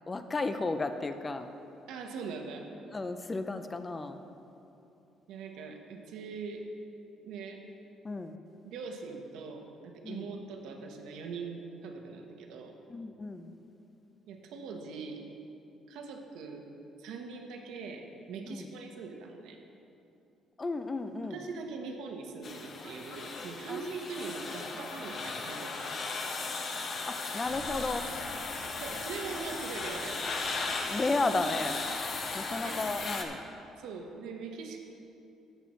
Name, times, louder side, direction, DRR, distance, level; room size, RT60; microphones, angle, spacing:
voice 1, 0.1-1.5 2.9-4.2 8.0-8.4 10.0-10.3 12.9-13.5 18.5-18.7 20.6-21.4 23.7-23.9 27.1-28.1 30.9-31.8 32.3-33.4, left 3 dB, 15° left, 9 dB, 0.3 m, -33 dB
voice 2, 1.9-2.7 5.3-6.7 7.2-7.6 8.6-12.8 14.3-15.2 15.9-16.6 17.0-19.6 21.3-25.9 28.7-30.3 32.5-32.7 33.8-34.8, right 4 dB, 85° right, 3 dB, 1.0 m, -42 dB
sound 1, 22.4-33.2, left 4 dB, 35° left, 0.7 m, -37 dB
sound 2, 27.3-33.4, right 2 dB, 30° right, 0.6 m, -50 dB
13.5 x 8.0 x 3.1 m, 2.8 s
cardioid pair, 170°, 0 cm